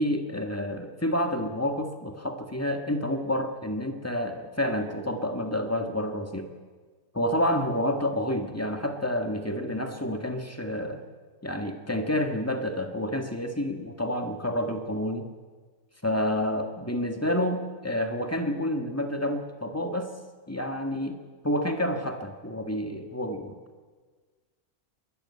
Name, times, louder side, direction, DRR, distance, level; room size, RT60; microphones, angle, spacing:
voice 1, 0.0-6.5 7.1-11.1 11.4-15.3 16.0-20.1 20.5-21.2 21.4-23.6, left 1 dB, 10° left, 5 dB, 1.8 m, -29 dB
21.5 x 13.5 x 9.8 m, 1.5 s
omnidirectional pair, 1.4 m